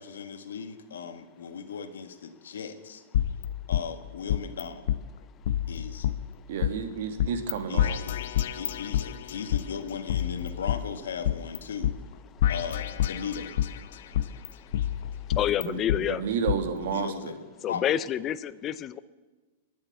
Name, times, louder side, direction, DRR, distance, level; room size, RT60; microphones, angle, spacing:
voice 1, 0.0-3.0 3.7-4.8 5.7-6.1 7.7-8.3 8.5-11.9 12.5-13.5 16.8-17.4 17.7-17.8, left 6 dB, 90° left, 8 dB, 1.6 m, -37 dB
sound 1, 3.1-4.6 4.9-5.0 5.5-6.7 7.2-7.5 7.8-9.6 10.1-11.6 11.8-11.9 12.4-13.8 14.1-16.0 16.5-16.6, left 11 dB, 70° left, 0.8 m, -28 dB
voice 2, 6.5-8.0 15.7-17.3, right 6 dB, 65° right, 8 dB, 1.9 m, -31 dB
voice 3, 14.1-14.7 15.3-16.2 17.6-19.0, left 11 dB, 25° left, 17 dB, 0.5 m, -29 dB
21.5 x 7.3 x 8.3 m, 1.3 s
hypercardioid pair, 140°, 0 cm